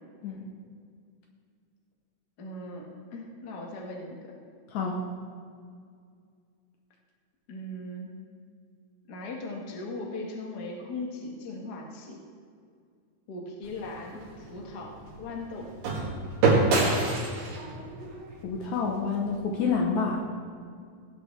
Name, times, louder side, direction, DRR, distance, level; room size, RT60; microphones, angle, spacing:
voice 1, 2.4-4.3 7.5-8.1 9.1-12.2 13.3-15.7, left 2 dB, 40° left, -1 dB, 1.5 m, -39 dB
sound 1, 13.6-19.8, right 3 dB, 85° right, 3.7 m, -28 dB
voice 2, 18.4-20.2, left 5 dB, 70° left, 1 dB, 2.1 m, -28 dB
17.0 x 8.7 x 3.3 m, 2.2 s
omnidirectional pair, 3.8 m